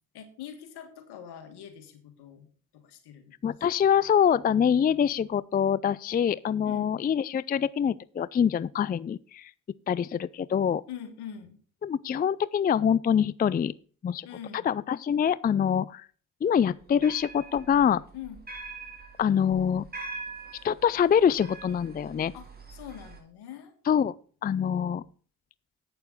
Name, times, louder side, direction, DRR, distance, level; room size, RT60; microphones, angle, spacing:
voice 1, 0.1-2.5 2.7-3.3 6.6-7.0 10.9-11.6 14.2-14.7 18.1-18.4 22.3-23.7, left 9 dB, 80° left, 1.9 m, -43 dB
voice 2, 3.4-9.5 9.9-10.8 11.8-13.7 14.0-14.3 14.5-16.1 16.4-18.0 19.2-19.9 20.6-22.3 23.9-24.1 24.4-25.0, left 8 dB, 25° left, 0.4 m, -25 dB
sound 1, 16.6-23.2, right 3 dB, 25° right, 2.9 m, -44 dB
8.7 x 6.9 x 6.4 m
hypercardioid pair, 45°, 39 cm